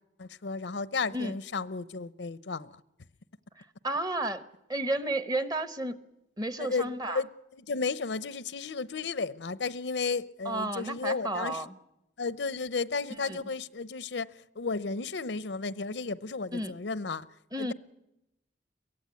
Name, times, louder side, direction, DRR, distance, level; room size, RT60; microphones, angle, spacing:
voice 1, 0.2-2.8 6.6-7.3 7.6-11.6 12.2-17.3 17.6-17.7, left 4 dB, 85° left, 0.7 m, -33 dB
voice 2, 3.8-4.4 4.7-6.0 6.4-7.2 10.4-11.7 13.3-13.4 16.5-16.7 17.5-17.7, right 1 dB, 20° right, 1.0 m, -32 dB
23.5 x 16.5 x 9.5 m
head